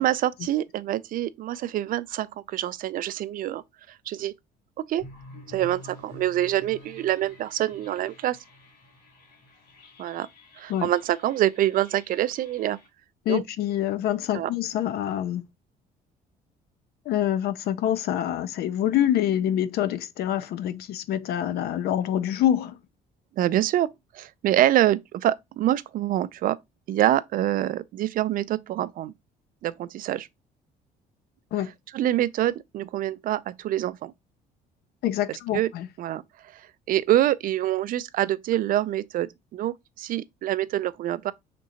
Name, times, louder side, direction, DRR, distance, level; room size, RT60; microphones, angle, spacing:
voice 1, 0.0-3.6 4.1-4.3 4.9-5.0 5.5-8.4 10.0-10.3 10.6-12.8 13.3-13.4 14.3-14.5 23.4-23.9 24.1-26.6 26.9-29.1 29.6-30.3 31.9-34.1 35.3-35.7 36.0-36.2 36.5-36.6 36.9-41.3, right 13 dB, 55° right, 0.4 m, -25 dB
sound 1, 5.0-12.9, left 1 dB, 90° left, 2.7 m, -49 dB
voice 2, 13.3-15.4 17.1-22.8 31.5-31.7 35.0-35.9, left 11 dB, 70° left, 0.5 m, -26 dB
5.1 x 3.6 x 2.8 m
cardioid pair, 110°, 17 cm